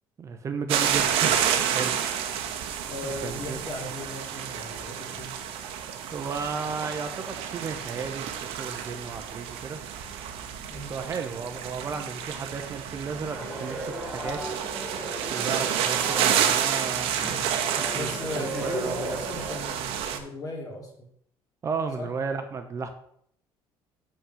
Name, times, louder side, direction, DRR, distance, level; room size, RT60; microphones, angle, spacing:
voice 1, 0.2-1.3 1.7-2.0 3.0-3.6 6.1-9.8 10.7-14.4 15.3-17.5 17.7-18.1 18.4-19.2 21.6-22.9, right 5 dB, 30° right, 6 dB, 0.8 m, -34 dB
sound 1, 0.7-20.2, right 9 dB, 80° right, 1.1 m, -30 dB
voice 2, 2.9-5.3 10.7-11.0 18.0-21.1 22.0-22.1, left 2 dB, 40° left, 1 dB, 2.4 m, -37 dB
sound 2, 13.3-19.6, right 1 dB, 5° right, 2.2 m, -37 dB
7.2 x 5.7 x 5.6 m, 0.67 s
cardioid pair, 140°, 10 cm